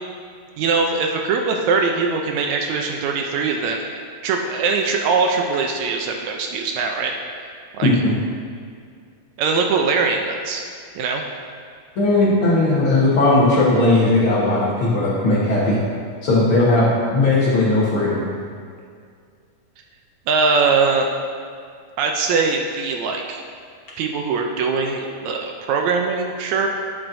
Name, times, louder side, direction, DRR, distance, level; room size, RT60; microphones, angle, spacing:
voice 1, 0.6-7.1 7.7-7.9 9.4-10.6 11.0-11.2 20.3-21.1 22.0-23.4 24.0-26.7, right 4 dB, 75° right, 2 dB, 1.8 m, -21 dB
voice 2, 7.8-8.1 12.0-15.8 16.2-18.2, left 2 dB, 55° left, -7 dB, 1.7 m, -17 dB
11.5 x 7.4 x 2.6 m, 2.2 s
omnidirectional pair, 3.5 m